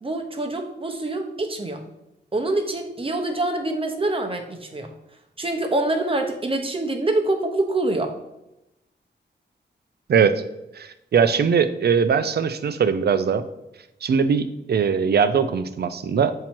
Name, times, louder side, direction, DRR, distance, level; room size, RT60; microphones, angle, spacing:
voice 1, 0.0-1.8 2.3-4.9 5.4-8.1, right 2 dB, 30° right, 4 dB, 0.8 m, -25 dB
voice 2, 10.1-10.4 10.7-13.4 14.0-16.3, right 6 dB, 60° right, 12 dB, 0.5 m, -21 dB
7.4 x 2.9 x 4.4 m, 0.89 s
wide cardioid pair, 110°, 19 cm